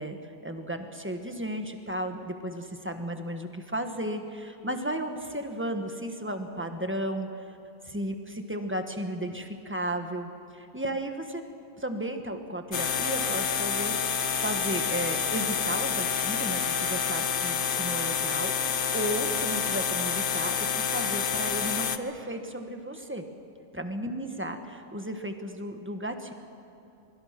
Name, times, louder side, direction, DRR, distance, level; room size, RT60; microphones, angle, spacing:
voice 1, 0.0-7.4 7.8-11.4 11.8-23.2 23.7-26.3, right 1 dB, 10° right, 6 dB, 1.4 m, -34 dB
sound 1, 12.7-22.0, left 7 dB, 45° left, 0.9 m, -28 dB
23.5 x 23.5 x 6.0 m, 2.8 s
omnidirectional pair, 1.4 m